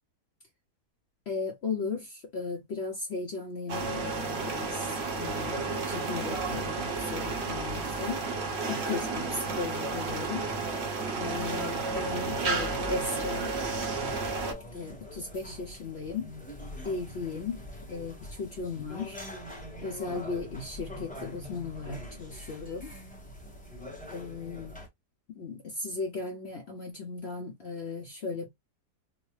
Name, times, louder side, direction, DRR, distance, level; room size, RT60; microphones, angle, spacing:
voice 1, 1.3-4.9 5.2-8.2 8.7-10.5 11.2-13.5 14.7-16.3 16.8-17.6 17.9-19.2 19.8-22.9 24.1-24.8 25.4-28.5, left 4 dB, 55° left, 0.8 m, -36 dB
sound 1, 3.7-14.5, right 3 dB, 50° right, 0.9 m, -32 dB
sound 2, 11.2-24.9, left 1 dB, 5° left, 1.0 m, -44 dB
3.9 x 2.1 x 3.1 m
omnidirectional pair, 1.8 m